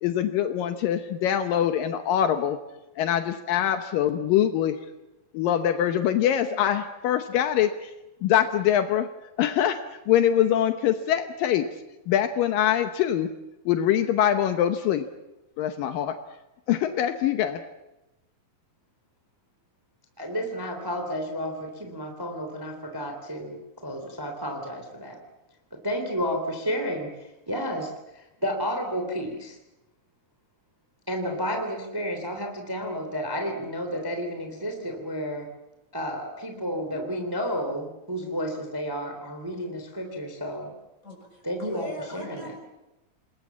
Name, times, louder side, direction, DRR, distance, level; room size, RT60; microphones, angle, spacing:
voice 1, 0.0-2.6 3.0-4.8 5.3-7.9 8.2-9.1 9.4-9.8 10.1-11.7 12.1-13.3 13.7-15.1 15.6-16.1 16.7-17.6, left 10 dB, 75° left, 8 dB, 2.6 m, -23 dB
voice 2, 20.2-25.2 25.8-29.6 31.1-35.5 35.9-40.7 41.4-41.9 42.1-42.5, equal, 5° right, 4 dB, 2.6 m, -31 dB
voice 3, 41.0-42.6, equal, 20° left, 1 dB, 7.0 m, -38 dB
28.5 x 20.5 x 7.3 m, 1.0 s
omnidirectional pair, 4.1 m